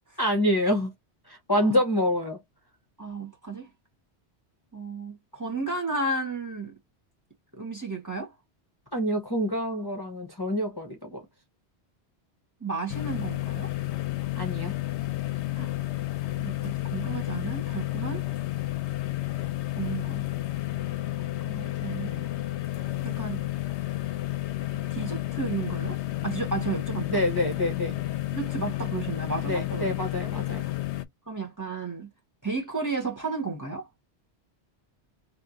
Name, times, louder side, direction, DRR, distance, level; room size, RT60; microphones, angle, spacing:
voice 1, 0.2-0.9 1.3-2.4 8.9-11.2 14.4-14.7 27.1-28.0 29.5-30.7, left 1 dB, 20° left, 1.1 m, -26 dB
voice 2, 3.0-3.7 4.7-6.7 7.5-8.3 12.6-13.7 15.5-15.7 16.4-18.2 19.7-20.2 21.4-22.2 23.0-23.4 24.7-26.0 26.2-27.2 28.3-29.9 31.3-32.1 32.4-33.9, right 3 dB, 15° right, 1.5 m, -33 dB
sound 1, 12.9-31.0, left 16 dB, 80° left, 0.9 m, -31 dB
3.2 x 3.1 x 2.7 m
omnidirectional pair, 1.1 m